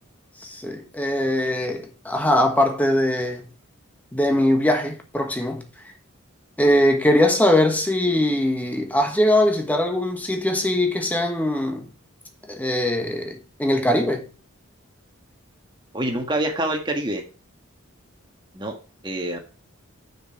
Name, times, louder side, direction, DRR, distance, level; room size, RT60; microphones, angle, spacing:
voice 1, 0.4-3.5 4.1-5.6 6.6-11.9 12.5-14.2, left 1 dB, 5° left, 1.3 m, -21 dB
voice 2, 15.9-17.2 18.5-18.8 19.0-19.4, right 1 dB, 20° right, 1.6 m, -26 dB
6.8 x 6.2 x 5.7 m
head